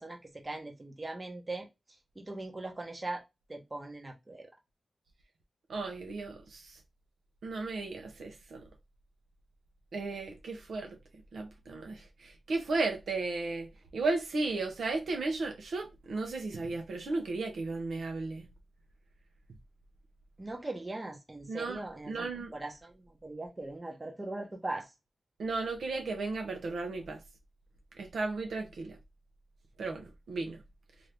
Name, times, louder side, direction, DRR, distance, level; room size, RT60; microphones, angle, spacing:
voice 1, 0.0-1.7 2.2-3.2 3.5-4.5 20.4-22.2 22.5-24.9, right 2 dB, 20° right, 0.8 m, -40 dB
voice 2, 5.7-6.8 7.4-8.6 9.9-11.0 11.3-13.7 13.9-18.5 21.5-22.5 25.4-27.2 28.0-29.0 29.8-30.6, right 3 dB, 80° right, 0.7 m, -35 dB
2.8 x 2.6 x 3.3 m
wide cardioid pair, 105°, 0 cm